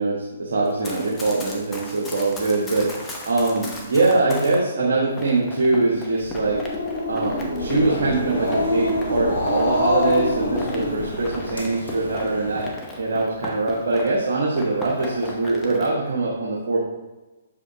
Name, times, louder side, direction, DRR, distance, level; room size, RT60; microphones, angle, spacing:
voice 1, 0.0-6.6 7.1-12.7 13.0-16.8, right 3 dB, 65° right, -4 dB, 1.1 m, -23 dB
Run, 0.7-4.6 5.2-14.3 14.5-15.9, left 2 dB, 15° left, 0.9 m, -37 dB
Growling, 6.2-11.6, left 2 dB, 50° left, 1.8 m, -26 dB
sound 1, 7.6-12.7, equal, 85° left, 1.3 m, -34 dB
6.9 x 4.9 x 2.9 m, 1.2 s
figure-of-eight pair, 130°, 0 cm